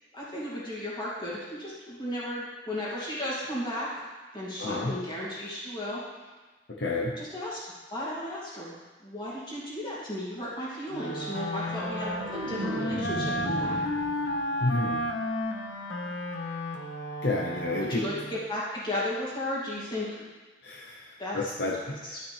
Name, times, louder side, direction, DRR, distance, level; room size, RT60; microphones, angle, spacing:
voice 1, 0.1-4.0 4.3-6.0 7.2-7.6 7.9-8.7 9.0-13.8 17.7-20.3 21.2-21.5 22.0-22.2, left 1 dB, 25° left, -8 dB, 2.6 m, -34 dB
voice 2, 4.6-4.9 6.8-7.1 14.6-15.0 17.2-18.0 20.6-22.2, left 2 dB, 65° left, -3 dB, 0.9 m, -30 dB
Wind instrument woodwind instrument, 10.9-18.4, left 1 dB, 90° left, 0.9 m, -33 dB
sound 1, 11.4-14.6 15.0-15.4, right 1 dB, 55° right, 1.6 m, -36 dB
12.0 x 5.6 x 3.5 m, 1.3 s
head